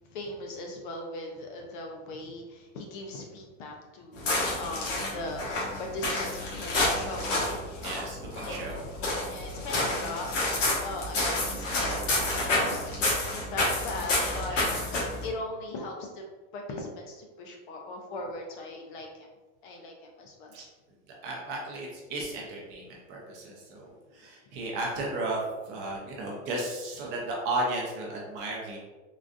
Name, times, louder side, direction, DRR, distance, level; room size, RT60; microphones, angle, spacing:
voice 1, 0.1-7.9 8.4-8.6 9.3-10.4 10.8-14.8 15.2-16.2 16.5-19.3 19.6-20.5 24.4-24.6, left 2 dB, 45° left, 1 dB, 0.4 m, -39 dB
sound 1, 4.1-15.3, left 2 dB, 80° left, 1.3 m, -29 dB
voice 2, 7.8-8.8 14.5-14.6 20.5-20.6 21.2-28.8, right 2 dB, 30° right, -2 dB, 0.5 m, -34 dB
3.8 x 2.3 x 2.4 m, 1.2 s
supercardioid pair, 165°, 37 cm